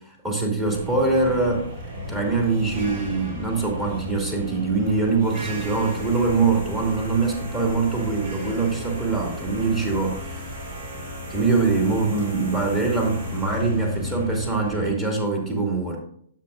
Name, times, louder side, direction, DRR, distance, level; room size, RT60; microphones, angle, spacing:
voice 1, 0.1-1.7 2.1-10.5 11.3-16.0, right 3 dB, 15° right, -1 dB, 2.2 m, -23 dB
sound 1, 0.7-14.9, left 1 dB, 50° right, 3.4 m, -34 dB
10.0 x 7.6 x 2.5 m, 0.65 s
hypercardioid pair, 150°, 0 cm